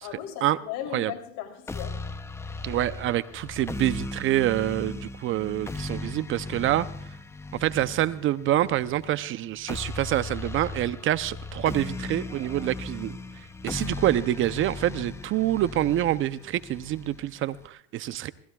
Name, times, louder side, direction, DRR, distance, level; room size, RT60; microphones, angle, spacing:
voice 1, 0.0-2.0, left 10 dB, 60° left, 3.2 m, -37 dB
sound 1, 1.7-17.7, left 3 dB, 10° left, 0.6 m, -37 dB
voice 2, 2.6-6.9 7.5-13.2 13.6-18.3, right 13 dB, 40° right, 0.6 m, -26 dB
Screaming, 12.2-12.8 14.3-14.5, right 3 dB, 15° right, 5.1 m, -53 dB
26.5 x 18.5 x 2.3 m
supercardioid pair, 125°, 33 cm